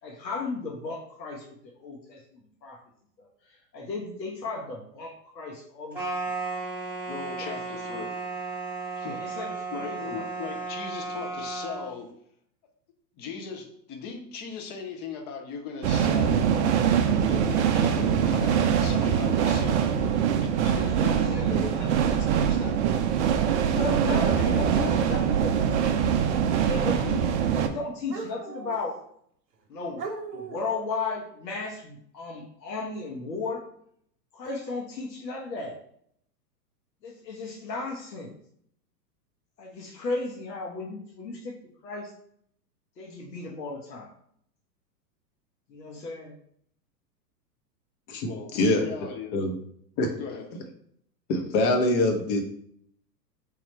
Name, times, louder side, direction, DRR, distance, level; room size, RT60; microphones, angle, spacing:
voice 1, 0.0-2.8 3.2-6.3 7.4-8.0 9.1-10.2 20.8-21.8 23.6-26.0 26.6-27.3 27.6-29.0 29.7-30.1 30.3-33.6 34.3-35.8 37.0-38.3 39.6-41.5 41.8-42.1 43.0-44.1 45.7-46.4, left 3 dB, 80° left, 0 dB, 1.1 m, -35 dB
sound 1, 5.9-11.9, right 3 dB, 5° right, 1.3 m, -34 dB
voice 2, 7.1-8.2 9.0-9.2 9.7-12.1 13.2-16.5 17.0-20.1 20.4-22.8 48.2-49.3 50.2-50.7, left 6 dB, 20° left, 4 dB, 0.5 m, -38 dB
sound 2, 15.8-27.7, right 8 dB, 45° right, 0.5 m, -23 dB
sound 3, 28.1-28.9 29.5-29.6 30.0-30.8, right 4 dB, 90° right, 0.8 m, -38 dB
voice 3, 48.1-48.9 49.3-49.5 50.0-50.1 51.3-52.4, left 2 dB, 40° left, 4 dB, 0.8 m, -24 dB
3.5 x 2.4 x 4.3 m, 0.67 s
hypercardioid pair, 110°, 50 cm